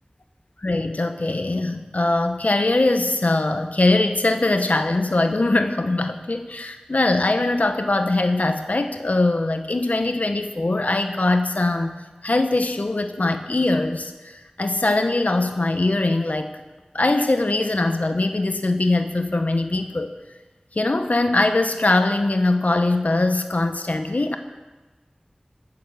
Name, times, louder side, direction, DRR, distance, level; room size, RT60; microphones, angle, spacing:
voice 1, 0.6-16.5 16.9-20.1 20.7-24.4, left 2 dB, 70° left, 7 dB, 0.9 m, -22 dB
16.5 x 7.0 x 6.6 m, 1.2 s
wide cardioid pair, 45°, 3 cm